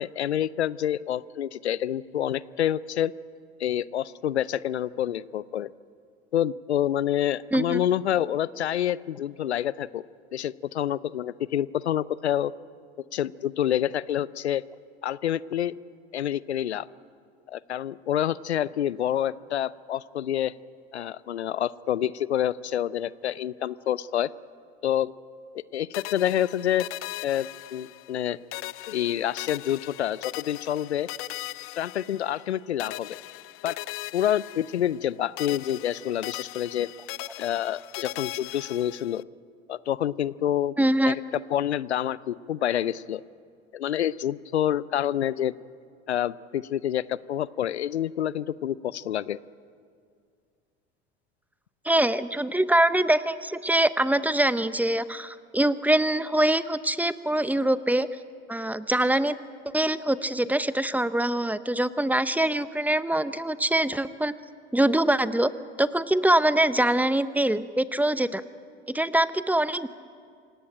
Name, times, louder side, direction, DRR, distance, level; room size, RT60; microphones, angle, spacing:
voice 1, 0.0-3.1 3.6-5.7 6.3-10.0 10.3-12.5 13.1-14.6 15.0-15.7 16.1-16.9 17.5-20.5 20.9-24.3 24.8-25.1 25.7-26.9 27.2-28.4 28.9-31.1 31.8-33.2 33.6-33.8 34.1-36.9 37.4-39.2 39.7-40.8 41.1-41.2 41.5-43.2 43.7-45.5 46.1-49.4, left 11 dB, 90° left, 20 dB, 0.6 m, -27 dB
voice 2, 7.5-7.8 40.8-41.1 51.8-58.1 58.5-59.4 59.7-64.3 64.7-65.5 65.8-68.4 68.9-69.9, right 1 dB, 5° right, 14 dB, 0.9 m, -24 dB
sound 1, 25.9-28.2 28.5-32.5 32.8-35.1 35.4-39.2, left 19 dB, 40° left, 0.5 m, -39 dB
26.5 x 17.5 x 9.1 m, 2.2 s
hypercardioid pair, 75°, 32 cm